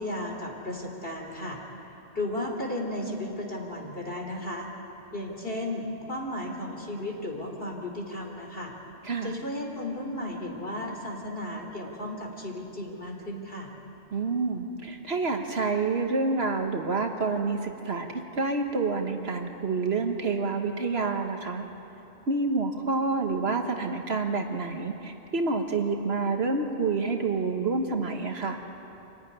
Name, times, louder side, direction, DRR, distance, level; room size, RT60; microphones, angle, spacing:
voice 1, 0.0-1.6 2.1-4.7 5.1-8.7 9.2-13.7, left 1 dB, 45° left, 1 dB, 3.2 m, -34 dB
voice 2, 9.0-9.3 14.1-21.6 22.3-28.6, right 3 dB, 55° right, 4 dB, 1.5 m, -28 dB
26.0 x 15.0 x 10.0 m, 3.0 s
omnidirectional pair, 1.3 m